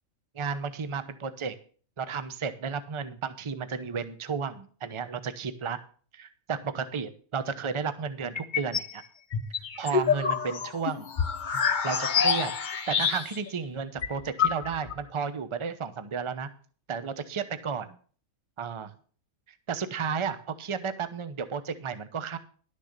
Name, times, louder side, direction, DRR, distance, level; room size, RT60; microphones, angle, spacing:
voice 1, 0.3-1.5 2.0-5.8 6.1-9.0 9.8-11.1 11.8-16.5 16.9-18.0 18.6-18.9 19.7-22.4, right 6 dB, 25° right, 11 dB, 0.7 m, -33 dB
sound 1, 8.4-8.9 9.3-13.5 13.8-13.9 14.0-15.0, left 6 dB, 40° left, 0.8 m, -27 dB
11.5 x 6.6 x 6.6 m, 0.43 s
omnidirectional pair, 1.5 m